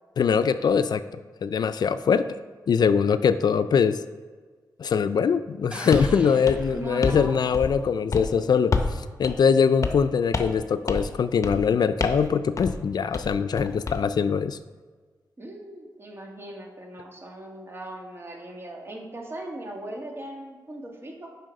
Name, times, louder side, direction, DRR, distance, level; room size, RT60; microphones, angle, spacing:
voice 1, 0.2-2.4 2.7-4.0 4.8-14.6, left 6 dB, 70° left, 12 dB, 0.3 m, -22 dB
sound 1, 5.7-7.6, right 1 dB, 15° right, 0.7 m, -41 dB
sound 2, 5.9-6.1 6.5-7.3 7.5-7.8 8.1-8.3 8.7-9.0 9.2-9.3 9.8-10.1 10.3-10.6 10.9-11.1 11.4-11.7 12.0-12.3 12.6-12.8 13.1-14.0, left 4 dB, 45° left, 0.7 m, -28 dB
voice 2, 6.7-7.4 15.4-21.3, right 1 dB, 35° right, 1 dB, 1.7 m, -39 dB
7.5 x 5.4 x 5.3 m, 1.4 s
wide cardioid pair, 95°, 7 cm